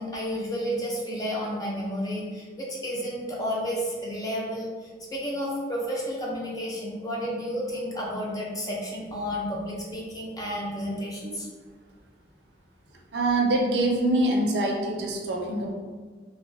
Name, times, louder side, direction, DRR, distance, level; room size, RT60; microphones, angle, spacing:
voice 1, 0.0-11.5, equal, 20° left, -4 dB, 0.5 m, -31 dB
voice 2, 13.1-15.7, right 2 dB, 75° right, 0 dB, 0.5 m, -24 dB
2.5 x 2.1 x 3.1 m, 1.5 s
head